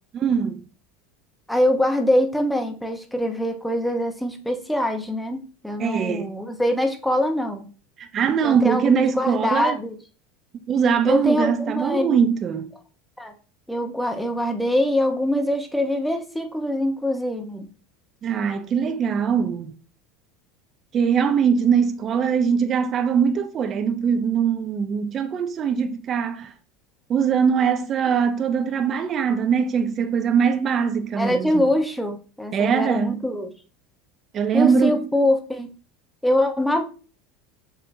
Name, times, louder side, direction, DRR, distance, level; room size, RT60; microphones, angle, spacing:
voice 1, 0.1-0.6 5.8-6.3 8.0-9.8 10.7-12.7 18.2-19.7 20.9-26.5 27.1-31.7 32.5-33.2 34.3-35.1, right 7 dB, 40° right, 0.5 m, -22 dB
voice 2, 1.5-7.7 8.4-10.0 11.0-12.2 13.2-13.3 13.7-17.7 31.1-33.5 34.5-35.7 36.2-36.8, left 1 dB, 5° left, 0.9 m, -23 dB
7.1 x 2.8 x 2.7 m
supercardioid pair, 110°, 0 cm